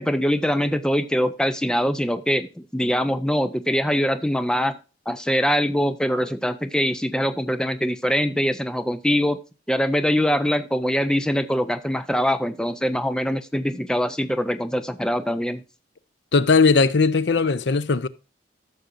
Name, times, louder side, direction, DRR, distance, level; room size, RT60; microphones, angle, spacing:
voice 1, 0.0-4.8 5.1-9.4 9.7-15.6, equal, 5° left, 0.5 m, -23 dB
voice 2, 16.3-18.1, left 4 dB, 70° left, 0.6 m, -18 dB
14.5 x 6.4 x 2.6 m
head